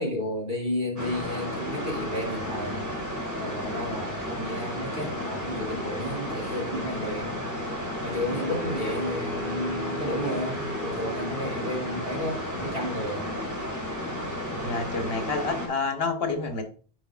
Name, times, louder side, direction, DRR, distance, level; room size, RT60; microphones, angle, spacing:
voice 1, 0.0-2.8 3.4-7.4 8.0-13.3, left 1 dB, 65° right, -2 dB, 3.0 m, -32 dB
Industrial Air Noise, 1.0-15.7, left 1 dB, 15° right, 2.0 m, -33 dB
sound 1, 8.4-11.7, left 1 dB, ahead, 2.7 m, -38 dB
voice 2, 14.6-16.6, left 4 dB, 75° left, 6 dB, 1.3 m, -28 dB
11.0 x 4.9 x 2.4 m, 0.39 s
omnidirectional pair, 1.0 m